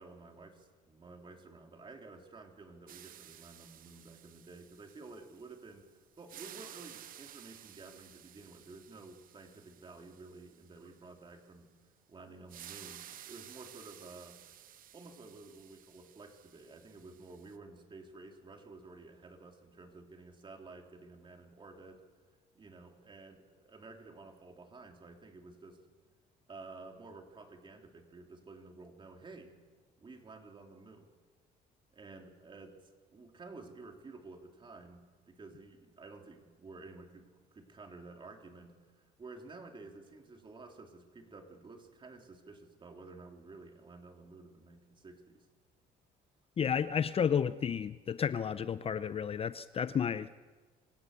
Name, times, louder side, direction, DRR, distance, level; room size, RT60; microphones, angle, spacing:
voice 1, 0.0-5.8 6.2-11.7 12.1-14.4 14.9-22.0 22.5-25.8 26.5-29.5 30.0-31.1 31.9-45.5, right 3 dB, 30° right, 3 dB, 3.4 m, -52 dB
sound 1, 2.9-5.8 6.1-11.0 12.5-17.6, right 11 dB, 55° right, 0.8 m, -54 dB
voice 2, 46.6-50.4, left 7 dB, 35° left, 13 dB, 0.6 m, -32 dB
25.5 x 16.5 x 6.8 m, 1.4 s
cardioid pair, 110°, 17 cm